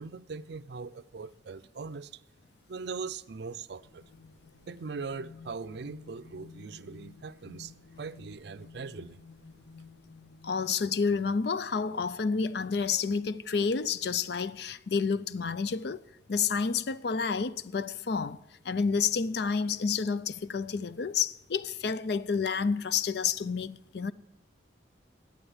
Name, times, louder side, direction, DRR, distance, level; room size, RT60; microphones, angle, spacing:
voice 1, 0.0-2.2 2.7-4.0 4.7-9.2, right 4 dB, 60° right, 0.5 m, -40 dB
sound 1, 3.6-11.3, left 4 dB, 85° left, 1.0 m, -53 dB
voice 2, 10.4-16.0 16.3-24.1, left 5 dB, 60° left, 0.4 m, -29 dB
11.0 x 8.8 x 9.9 m
head